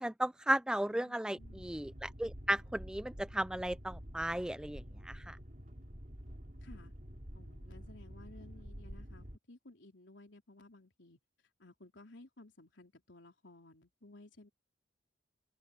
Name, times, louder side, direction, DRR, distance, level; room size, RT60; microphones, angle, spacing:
voice 1, 0.0-5.4, right 1 dB, 5° right, 0.4 m, -35 dB
voice 2, 0.9-1.9 6.6-6.9 7.3-11.2 11.6-14.5, left 2 dB, 75° left, 3.9 m, -57 dB
Boat Water vehicle, 1.4-9.4, equal, 45° right, 3.5 m, -49 dB
head